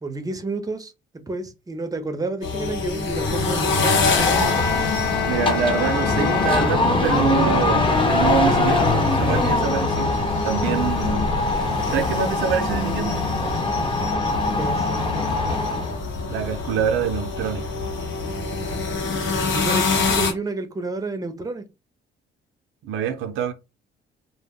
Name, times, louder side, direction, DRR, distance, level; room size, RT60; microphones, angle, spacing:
voice 1, 0.0-4.7 14.5-14.9 19.5-21.6, right 2 dB, 20° right, 0.5 m, -30 dB
sound 1, 2.4-20.3, left 4 dB, 75° left, 0.8 m, -27 dB
sound 2, 3.1-16.0, left 2 dB, 25° left, 0.8 m, -23 dB
sound 3, 3.6-7.4, left 9 dB, 60° left, 0.4 m, -29 dB
voice 2, 5.3-10.2 10.4-11.3 11.6-13.2 16.3-17.7 22.8-23.5, right 8 dB, 85° right, 0.5 m, -25 dB
2.0 x 2.0 x 3.5 m
cardioid pair, 90°, 20 cm